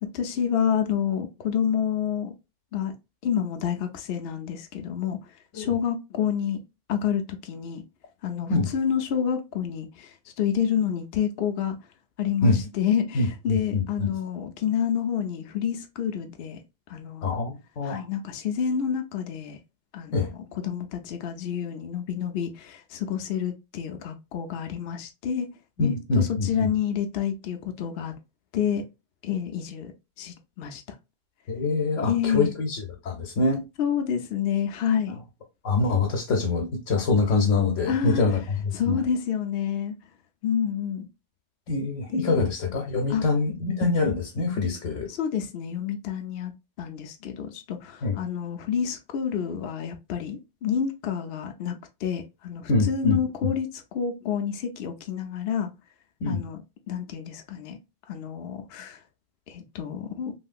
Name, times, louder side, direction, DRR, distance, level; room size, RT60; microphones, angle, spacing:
voice 1, 0.0-2.3 2.7-2.9 3.2-5.2 5.5-6.6 6.9-7.8 8.2-11.8 12.2-16.6 16.9-17.3 17.8-19.6 19.9-25.5 25.8-28.1 28.5-28.8 29.2-29.9 30.2-30.8 32.0-32.5 33.8-35.2 37.9-38.2 38.7-39.9 40.4-41.1 42.1-42.4 43.1-43.2 45.1-46.5 46.8-55.7 56.2-56.6 56.9-57.8 58.1-59.0 59.5-60.3, left 8 dB, 65° left, 0.7 m, -28 dB
voice 2, 13.1-14.1 17.2-18.1 20.1-20.3 25.8-26.7 31.5-33.6 35.6-39.0 41.7-45.1 48.0-48.2 52.7-53.5 56.2-56.4, left 3 dB, 90° left, 1.1 m, -25 dB
3.0 x 2.8 x 2.4 m
omnidirectional pair, 1.2 m